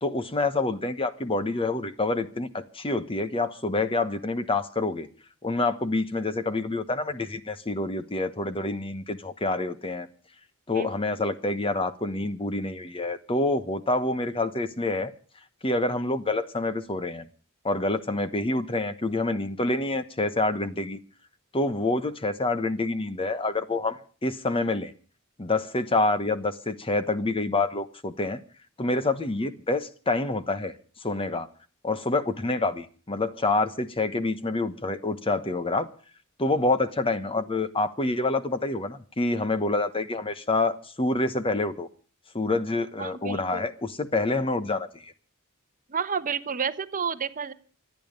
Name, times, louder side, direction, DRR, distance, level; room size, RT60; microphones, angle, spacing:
voice 1, 0.0-5.1 5.4-10.1 10.7-15.1 15.6-17.3 17.6-21.0 21.5-24.9 25.4-28.4 28.8-30.7 31.0-31.5 31.8-35.9 36.4-41.9 42.3-45.1, left 2 dB, 25° left, 11 dB, 1.2 m, -27 dB
voice 2, 43.0-43.7 45.9-47.5, right 6 dB, 40° right, 11 dB, 0.9 m, -30 dB
26.0 x 9.5 x 5.3 m, 0.41 s
head